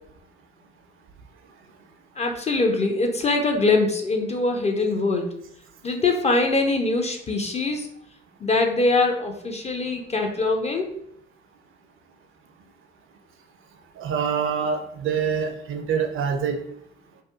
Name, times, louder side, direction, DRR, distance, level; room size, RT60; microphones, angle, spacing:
voice 1, 2.2-5.3 5.8-7.9 8.4-11.0, left 3 dB, 20° left, 3 dB, 0.4 m, -23 dB
voice 2, 14.0-16.6, right 6 dB, 45° right, 5 dB, 0.4 m, -25 dB
2.6 x 2.3 x 2.3 m, 0.73 s
figure-of-eight pair, 40°, 31 cm